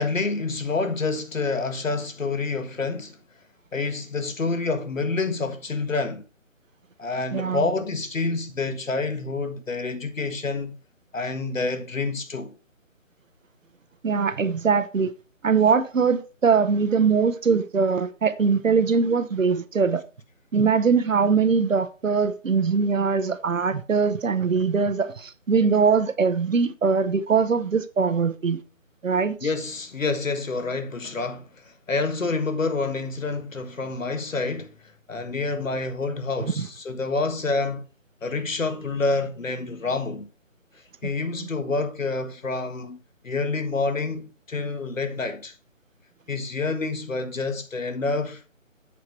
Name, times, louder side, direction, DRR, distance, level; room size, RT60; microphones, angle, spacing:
voice 1, 0.0-3.2 3.7-6.2 7.0-10.8 11.1-12.5 29.4-34.7 35.1-37.8 38.2-40.3 41.0-43.0 43.2-45.5 46.3-48.4, left 3 dB, 80° left, 1.7 m, -28 dB
voice 2, 7.3-7.6 14.0-15.1 15.4-20.0 20.5-28.6 29.0-29.4 36.4-36.7 41.4-41.5, right 5 dB, 80° right, 0.9 m, -22 dB
8.0 x 4.8 x 4.3 m
figure-of-eight pair, 160°, 39 cm